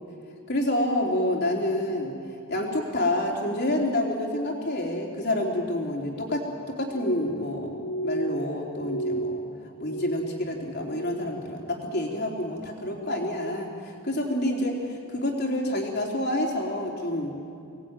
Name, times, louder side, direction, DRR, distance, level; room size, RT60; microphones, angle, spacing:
voice 1, 0.5-2.1 2.5-7.8 8.0-9.4 9.8-13.7 14.0-14.8 15.1-17.5, left 1 dB, 45° left, 0 dB, 3.8 m, -28 dB
Glass, 6.9-11.5 11.8-12.4 12.8-13.4 13.9-14.2, right 2 dB, 65° left, 4.6 m, -34 dB
24.5 x 19.5 x 9.1 m, 2.5 s
head